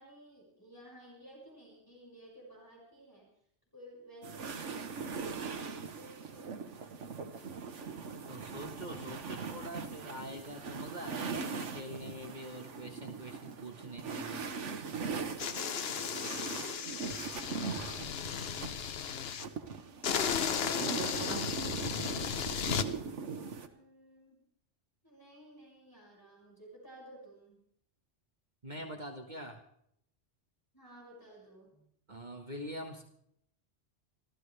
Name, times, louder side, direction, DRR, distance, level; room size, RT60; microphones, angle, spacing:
voice 1, 0.0-3.3 3.7-7.3 23.5-24.4 25.0-27.6 30.7-31.9, right 1 dB, 15° left, -5 dB, 6.1 m, -55 dB
sound 1, 4.2-18.7 19.4-23.7, right 5 dB, 85° right, 1.5 m, -40 dB
voice 2, 8.3-14.5 20.7-21.5 28.6-29.6 32.1-33.0, right 1 dB, 40° right, 3 dB, 1.7 m, -44 dB
sound 2, 15.4-19.4 20.0-22.9, left 7 dB, 60° left, 1.0 m, -35 dB
25.5 x 15.0 x 3.4 m, 0.70 s
omnidirectional pair, 1.2 m